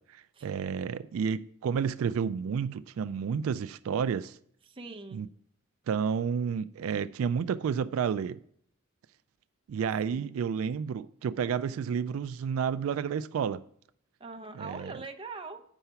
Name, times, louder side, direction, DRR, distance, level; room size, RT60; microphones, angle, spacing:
voice 1, 0.0-4.4 5.1-5.3 5.9-8.4 9.7-13.6 14.6-14.9, right 7 dB, 85° right, 0.3 m, -31 dB
voice 2, 4.6-5.2 10.1-10.4 14.2-15.6, right 3 dB, 25° right, 0.7 m, -42 dB
8.0 x 5.6 x 5.6 m
head